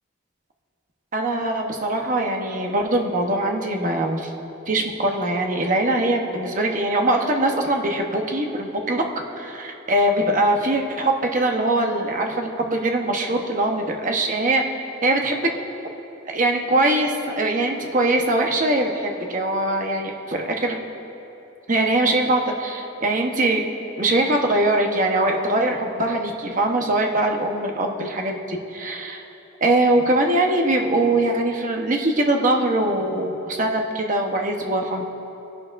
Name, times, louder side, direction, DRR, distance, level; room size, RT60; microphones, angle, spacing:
voice 1, 1.1-4.3 4.7-9.0 9.4-14.6 15.0-15.5 16.3-20.7 21.7-23.6 24.0-29.2 29.6-35.0, right 1 dB, 40° right, 2 dB, 1.0 m, -22 dB
21.0 x 11.0 x 2.6 m, 3.0 s
head